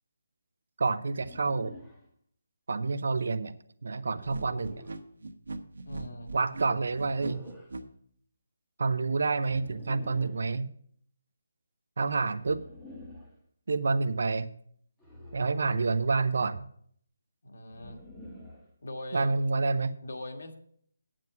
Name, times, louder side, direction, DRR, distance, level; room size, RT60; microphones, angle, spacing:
voice 1, 0.8-1.7 2.7-3.6 3.8-4.8 6.3-7.4 8.8-10.7 12.0-12.6 13.7-14.5 15.3-16.7 19.1-20.0, right 4 dB, 50° right, 11 dB, 0.6 m, -28 dB
sound 1, 1.1-2.1 4.0-5.0 6.7-7.7 9.4-10.4 12.4-13.4 15.0-16.0 17.7-18.7, left 1 dB, 5° left, 1.0 m, -48 dB
sound 2, 4.3-7.8, right 3 dB, 75° right, 1.3 m, -39 dB
voice 2, 5.9-6.3 17.4-18.0 18.8-19.3 20.0-20.5, left 1 dB, 55° left, 4 dB, 1.7 m, -41 dB
9.3 x 7.6 x 6.1 m, 0.63 s
hypercardioid pair, 180°, 0 cm